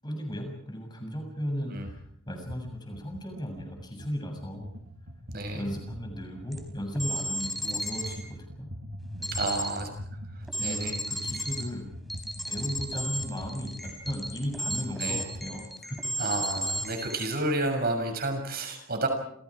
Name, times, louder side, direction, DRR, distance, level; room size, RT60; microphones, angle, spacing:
voice 1, 0.0-4.7 5.5-8.7 9.2-9.7 10.5-11.9 12.2-16.0, equal, 20° left, 3 dB, 7.2 m, -36 dB
sound 1, 1.9-2.0 2.3-15.6, equal, 85° right, 2.7 m, -43 dB
voice 2, 5.3-5.7 7.6-7.8 9.3-9.9 10.6-11.0 15.0-15.2 16.2-19.1, right 2 dB, 45° right, 5 dB, 6.6 m, -30 dB
sound 2, 6.5-6.6 6.9-8.2 9.2-9.9 10.5-11.6 12.1-17.3, equal, ahead, 4.1 m, -33 dB
30.0 x 28.0 x 5.0 m, 0.71 s
head